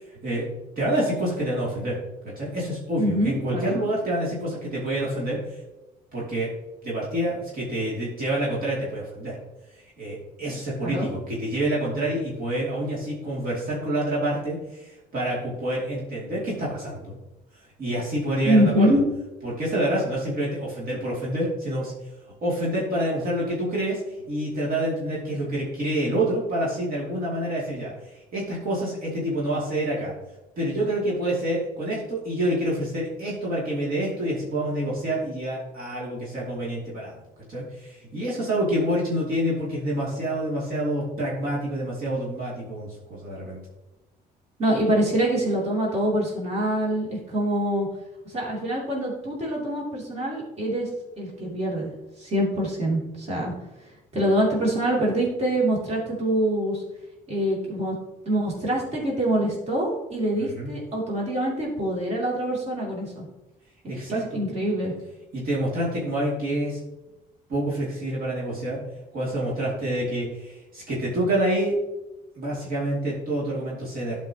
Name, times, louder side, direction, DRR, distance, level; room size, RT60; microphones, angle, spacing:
voice 1, 0.1-0.5 0.8-2.0 2.4-5.6 6.1-6.5 6.8-9.4 9.8-17.2 17.8-18.9 19.4-21.9 22.4-30.1 30.6-37.2 37.5-43.6 60.3-60.7 63.9-64.4 65.3-66.8 67.5-68.8 69.1-71.7 72.4-74.2, right 1 dB, 60° right, -6 dB, 2.6 m, -27 dB
voice 2, 3.0-3.8 10.8-11.1 18.4-19.0 44.6-47.9 48.2-50.9 51.2-51.9 52.2-53.5 54.1-56.8 57.3-57.9 58.2-63.2 64.3-64.9, right 1 dB, 40° right, -4 dB, 2.9 m, -25 dB
12.0 x 5.2 x 2.9 m, 0.99 s
cardioid pair, 110°, 17 cm